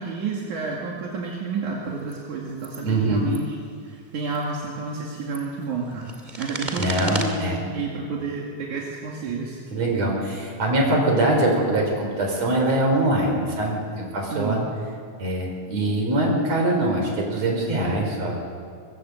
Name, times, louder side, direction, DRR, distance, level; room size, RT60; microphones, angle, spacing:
voice 1, 0.0-3.6 3.8-9.6 14.3-14.7, right 4 dB, 80° right, -2 dB, 3.8 m, -30 dB
sound 1, 2.0-2.1 2.6-2.8 3.2-3.4 4.2-4.5 5.0-7.3, right 2 dB, 15° right, 2.3 m, -34 dB
voice 2, 2.8-3.3 6.8-7.6 9.7-14.6 15.2-18.4, right 1 dB, 60° right, 1 dB, 6.0 m, -23 dB
23.0 x 22.5 x 8.1 m, 2.1 s
omnidirectional pair, 3.4 m